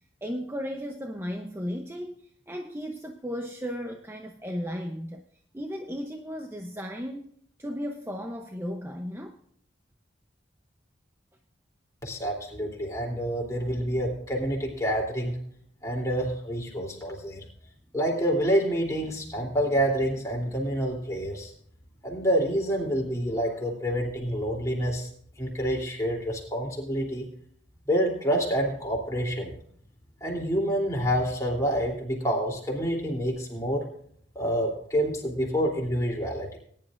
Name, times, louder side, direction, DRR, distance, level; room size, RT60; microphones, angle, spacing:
voice 1, 0.2-5.2 5.5-7.3 7.6-9.4, equal, 15° right, 4 dB, 0.7 m, -35 dB
voice 2, 12.0-15.4 15.8-17.4 17.9-21.5 22.0-25.1 25.4-27.3 27.9-29.5 30.2-33.9 34.3-36.5, equal, 15° left, -2 dB, 3.1 m, -27 dB
19.5 x 10.5 x 2.5 m, 0.64 s
head